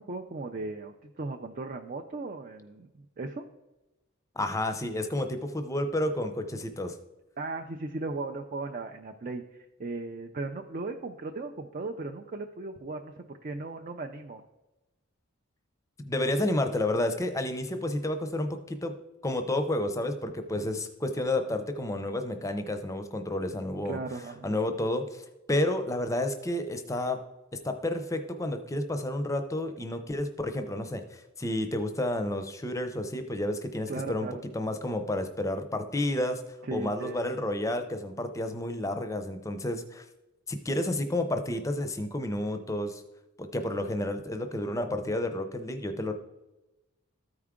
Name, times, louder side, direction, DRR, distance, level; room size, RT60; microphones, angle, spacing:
voice 1, 0.0-2.9 3.2-3.4 7.4-14.4 23.9-24.5 33.9-34.4 36.6-37.3, right 3 dB, 35° right, 4 dB, 0.4 m, -37 dB
voice 2, 4.4-7.0 16.0-18.9 19.2-24.0 24.4-27.2 27.6-34.3 34.5-36.4 36.7-40.0 40.5-43.0 43.4-46.1, left 1 dB, 15° left, 7 dB, 0.6 m, -30 dB
13.5 x 4.8 x 3.7 m, 1.0 s
head